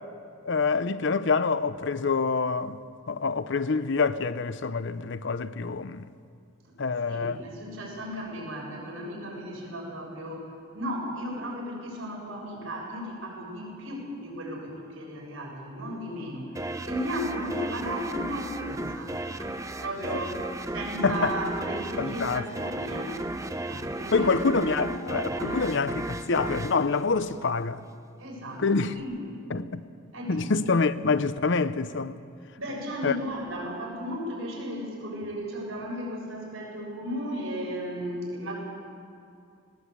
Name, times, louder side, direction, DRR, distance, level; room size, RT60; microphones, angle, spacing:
voice 1, 0.4-2.8 3.1-6.1 6.8-7.4 21.0-21.3 22.0-22.4 24.1-27.8 28.6-28.9 29.5-29.8 30.3-32.1 33.0-33.1, left 4 dB, 60° left, 0.7 m, -26 dB
voice 2, 7.0-20.4 20.7-23.1 23.7-24.3 24.8-25.8 28.2-29.4 30.1-30.5 32.5-38.6, equal, 80° right, 7.4 m, -35 dB
sound 1, 16.6-27.8, right 1 dB, 15° right, 0.7 m, -34 dB
20.5 x 18.5 x 8.5 m
head